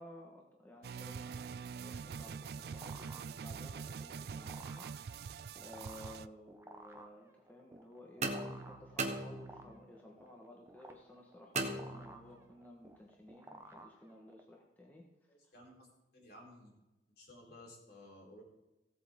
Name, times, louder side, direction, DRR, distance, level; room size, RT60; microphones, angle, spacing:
voice 1, 0.0-4.9 5.6-15.0, left 1 dB, 10° left, -1 dB, 1.4 m, -55 dB
sound 1, 0.8-6.3, right 6 dB, 60° right, 0.3 m, -44 dB
sound 2, 2.3-14.5, right 2 dB, 15° right, 0.9 m, -56 dB
sound 3, 8.2-9.9 11.5-12.5, right 2 dB, 40° right, 1.2 m, -39 dB
voice 2, 15.3-15.9 16.1-16.7 17.2-18.4, left 1 dB, 65° left, -3 dB, 4.3 m, -55 dB
16.0 x 8.2 x 3.8 m, 1.0 s
head